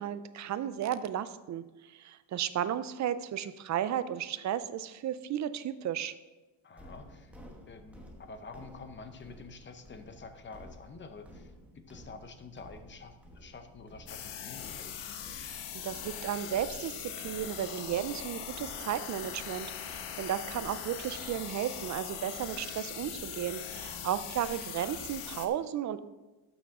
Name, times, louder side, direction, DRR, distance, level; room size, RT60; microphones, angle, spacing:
voice 1, 0.0-6.1 15.8-26.0, right 10 dB, 40° right, 13 dB, 0.4 m, -34 dB
voice 2, 6.6-7.4 7.7-15.2 23.7-24.1, left 4 dB, 25° left, 8 dB, 0.7 m, -48 dB
sound 1, 6.8-25.3, equal, 5° right, 1.0 m, -53 dB
sound 2, 14.1-25.5, left 9 dB, 90° left, 1.1 m, -41 dB
12.0 x 7.1 x 3.6 m, 1.1 s
cardioid pair, 150°, 48 cm